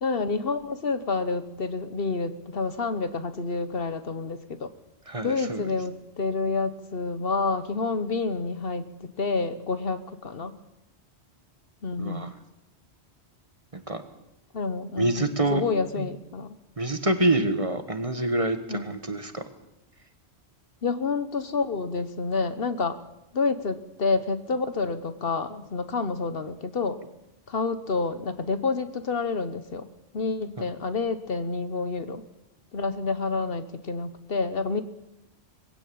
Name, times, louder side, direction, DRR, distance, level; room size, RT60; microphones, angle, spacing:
voice 1, 0.0-4.7 5.2-10.6 11.8-12.3 14.5-16.6 18.7-18.9 20.8-23.0 23.3-27.0 27.5-29.9 30.1-32.2 32.7-34.8, left 4 dB, 60° left, 12 dB, 1.2 m, -29 dB
voice 2, 5.1-5.7 12.0-12.3 13.7-14.0 15.0-15.6 16.0-16.1 16.8-19.4 30.6-30.7, right 2 dB, 30° right, 9 dB, 1.4 m, -26 dB
21.0 x 16.0 x 8.6 m, 0.92 s
omnidirectional pair, 1.1 m